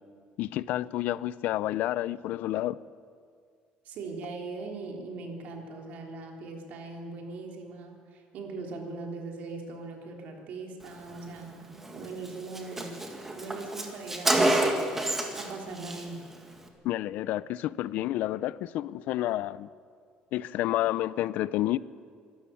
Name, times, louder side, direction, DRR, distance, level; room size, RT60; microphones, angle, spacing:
voice 1, 0.4-2.8 16.8-19.7 20.3-21.8, left 14 dB, 65° left, 0.5 m, -29 dB
voice 2, 3.8-12.9 13.3-14.9 15.3-16.2, right 3 dB, 60° right, 3.5 m, -40 dB
Car, 11.8-12.0 12.3-12.4 12.5-15.5 15.8-16.0, right 1 dB, 10° right, 2.0 m, -27 dB
24.0 x 13.0 x 8.6 m
cardioid pair, 155°, 3 cm